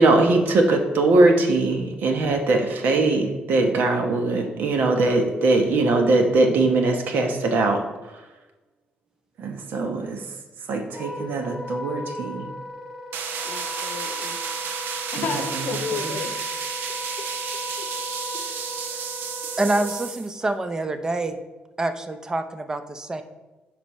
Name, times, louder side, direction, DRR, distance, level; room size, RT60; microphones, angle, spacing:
voice 1, 0.0-7.8 9.4-10.2 10.7-12.5 15.2-15.7 16.0-16.2, right 2 dB, 70° right, 4 dB, 1.0 m, -21 dB
Wind instrument woodwind instrument, 10.9-19.9, left 2 dB, 10° left, 1.1 m, -36 dB
sound 1, 13.1-20.3, right 7 dB, 90° right, 0.6 m, -32 dB
voice 2, 13.4-14.4 15.1-16.4 16.9-17.9 18.3-18.7, left 6 dB, 65° left, 8 dB, 0.7 m, -34 dB
voice 3, 19.6-21.4 21.8-23.2, right 2 dB, 20° right, 9 dB, 0.6 m, -26 dB
9.8 x 5.3 x 3.1 m, 1.1 s
cardioid pair, 115°, 3 cm